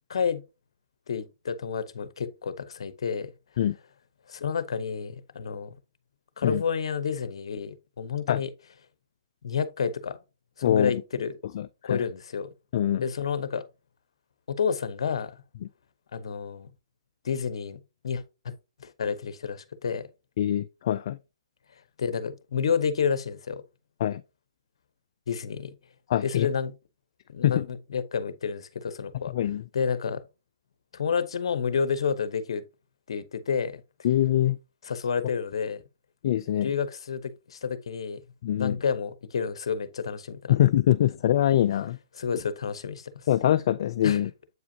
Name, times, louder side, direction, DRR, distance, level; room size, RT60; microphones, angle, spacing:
voice 1, 0.1-0.4 1.1-3.3 4.3-5.7 6.4-8.5 9.4-10.2 10.6-11.4 11.8-12.5 13.0-13.6 14.5-15.3 16.1-16.7 17.2-17.8 18.0-18.5 18.8-20.1 22.0-23.6 25.3-25.7 26.2-26.7 27.3-29.3 29.7-30.2 30.9-32.6 33.1-33.7 34.8-35.8 36.6-38.2 38.5-40.6 42.2-43.3 44.0-44.2, left 6 dB, 65° left, 0.8 m, -30 dB
voice 2, 10.6-10.9 11.5-12.0 12.7-13.1 20.4-21.2 24.0-24.2 26.1-26.5 27.4-27.7 29.3-29.6 34.0-34.6 36.2-36.7 38.4-38.8 40.5-42.0 43.3-44.3, left 12 dB, 50° left, 0.3 m, -23 dB
7.9 x 4.9 x 2.7 m
hypercardioid pair, 135°, 3 cm